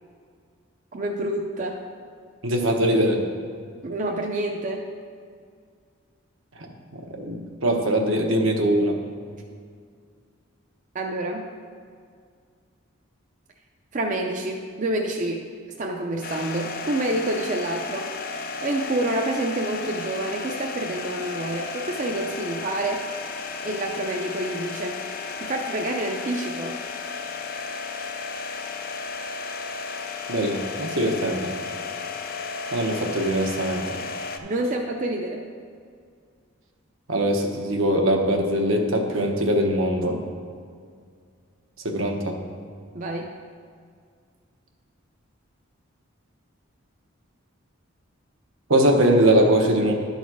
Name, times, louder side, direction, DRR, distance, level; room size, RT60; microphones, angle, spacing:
voice 1, 0.9-1.8 3.8-4.8 10.9-11.4 13.9-15.5 15.8-23.0 23.6-25.0 25.4-26.8 34.4-35.4 42.9-43.3, right 1 dB, 35° right, 1 dB, 0.5 m, -28 dB
voice 2, 2.4-3.2 6.6-9.0 30.3-31.5 32.7-34.0 37.1-40.2 41.8-42.4 48.7-49.9, right 1 dB, 75° right, 2 dB, 1.0 m, -22 dB
sound 1, 16.2-34.4, left 4 dB, 45° left, 0.5 m, -34 dB
11.0 x 4.0 x 6.1 m, 2.1 s
head